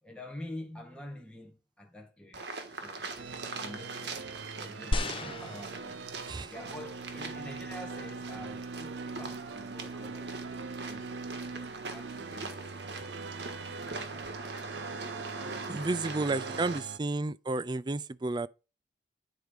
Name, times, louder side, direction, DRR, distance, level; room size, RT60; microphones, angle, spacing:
voice 1, 0.0-2.5 2.8-3.1 3.6-4.3 4.6-11.2 11.5-13.0 13.3-14.3 16.5-16.9, left 1 dB, 5° left, 2.0 m, -47 dB
sound 1, 2.3-16.8, right 3 dB, 65° right, 1.6 m, -42 dB
sound 2, 3.2-17.0, right 4 dB, 80° right, 0.5 m, -42 dB
sound 3, 4.9-6.4 7.2-7.3, left 1 dB, 30° left, 0.7 m, -34 dB
voice 2, 15.7-18.5, right 2 dB, 25° right, 0.4 m, -32 dB
9.7 x 4.4 x 5.1 m
head